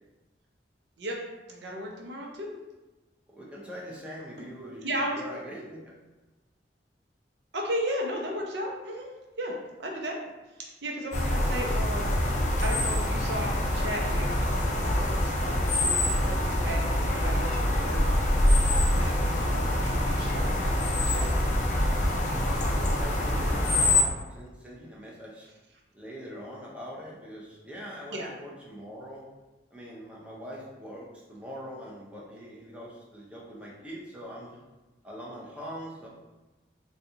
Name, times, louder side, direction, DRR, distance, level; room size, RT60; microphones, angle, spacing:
voice 1, 1.5-2.5 4.8-5.2 7.5-9.1 9.4-10.2 10.6-12.1 12.6-18.0 18.9-21.3 28.1-28.3, equal, 75° right, 0 dB, 0.6 m, -35 dB
voice 2, 3.3-5.9 22.4-25.5 25.9-29.3 29.7-34.6 35.0-36.1, equal, 5° right, -5 dB, 0.7 m, -42 dB
sound 1, 11.1-24.0, left 1 dB, 45° left, 0.5 m, -25 dB
4.0 x 2.4 x 2.8 m, 1.1 s
head